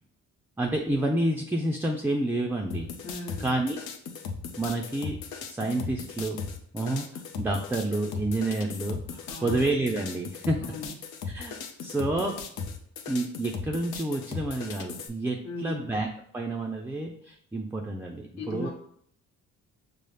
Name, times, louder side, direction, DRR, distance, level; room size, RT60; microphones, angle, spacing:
voice 1, 0.6-2.9 3.4-3.8 4.6-6.4 6.7-10.6 11.3-12.4 13.1-16.1 16.3-18.7, right 2 dB, 5° right, 1 dB, 0.3 m, -29 dB
sound 1, 2.7-15.1, left 5 dB, 85° left, 0.6 m, -37 dB
voice 2, 3.0-3.6 9.3-9.6 10.7-10.9 15.4-16.0 18.4-18.7, left 3 dB, 65° left, -2 dB, 1.0 m, -37 dB
5.2 x 2.0 x 3.2 m, 0.67 s
cardioid pair, 90°, 30 cm